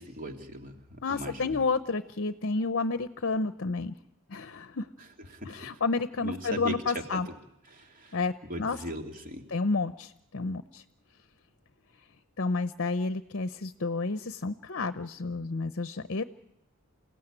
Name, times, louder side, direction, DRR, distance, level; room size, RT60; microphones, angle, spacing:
voice 1, 0.0-1.6 5.3-5.8 6.2-7.3 7.7-9.5, equal, 40° right, 3 dB, 2.9 m, -39 dB
voice 2, 1.0-3.9 4.3-4.9 5.5-7.3 8.1-8.3 8.6-8.8 9.5-10.8 12.4-16.2, left 3 dB, 55° left, 11 dB, 0.8 m, -30 dB
28.5 x 16.5 x 9.0 m, 0.90 s
head